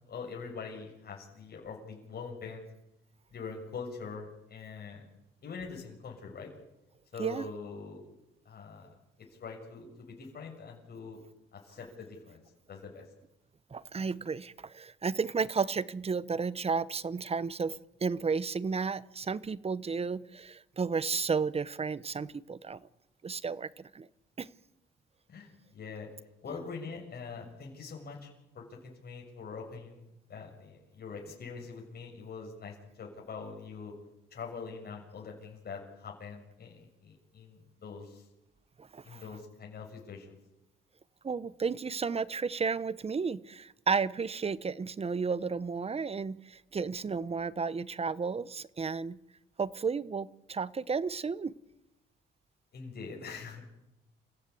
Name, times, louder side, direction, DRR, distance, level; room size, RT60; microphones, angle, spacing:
voice 1, 0.0-2.7 3.3-5.0 5.4-6.5 7.1-8.1 8.4-8.9 9.4-11.2 11.5-12.4 12.7-13.0 25.3-26.1 26.4-28.3 28.5-33.9 34.3-38.2 39.0-40.4 52.7-53.7, left 5 dB, 50° left, 0 dB, 6.8 m, -43 dB
voice 2, 13.7-22.8 23.2-24.1 24.4-24.5 38.8-39.2 41.2-49.2 49.6-51.6, right 5 dB, 30° right, 18 dB, 0.9 m, -33 dB
28.0 x 16.0 x 8.4 m, 0.92 s
cardioid pair, 90°, 20 cm